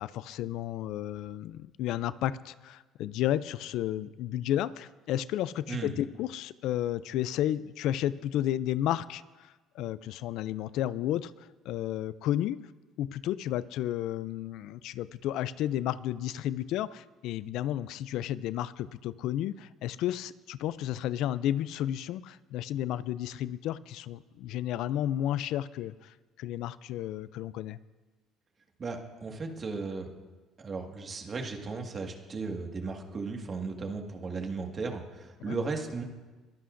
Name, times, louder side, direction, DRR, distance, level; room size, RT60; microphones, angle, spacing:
voice 1, 0.0-11.3 11.7-12.7 13.0-27.8 35.4-35.6, left 12 dB, 75° left, 17 dB, 0.3 m, -32 dB
voice 2, 28.8-30.1 30.6-36.0, right 4 dB, 35° right, 2 dB, 1.7 m, -36 dB
22.0 x 14.0 x 2.6 m, 1.3 s
cardioid pair, 120°, 0 cm